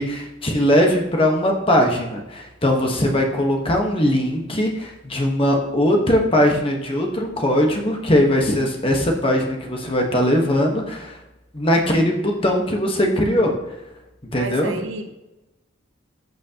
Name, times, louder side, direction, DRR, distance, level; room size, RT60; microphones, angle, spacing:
voice 1, 0.0-11.2 11.5-13.5 14.3-14.8, left 1 dB, 25° left, 1 dB, 1.3 m, -20 dB
voice 2, 14.4-15.1, right 2 dB, 70° right, 7 dB, 0.8 m, -31 dB
14.0 x 6.2 x 3.0 m, 0.99 s
head